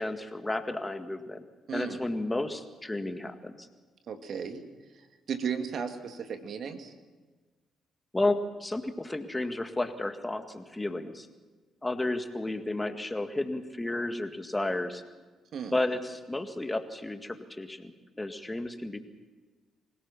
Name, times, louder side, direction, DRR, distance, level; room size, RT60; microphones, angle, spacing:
voice 1, 0.0-1.4 1.7-3.7 8.1-11.3 11.8-15.0 15.7-17.9 18.2-19.0, left 2 dB, 15° left, 8 dB, 1.9 m, -32 dB
voice 2, 1.7-2.0 4.1-4.6 5.3-6.9 15.5-15.7, right 6 dB, 65° right, 7 dB, 2.2 m, -35 dB
25.0 x 17.5 x 7.4 m, 1.3 s
supercardioid pair, 60°, 0 cm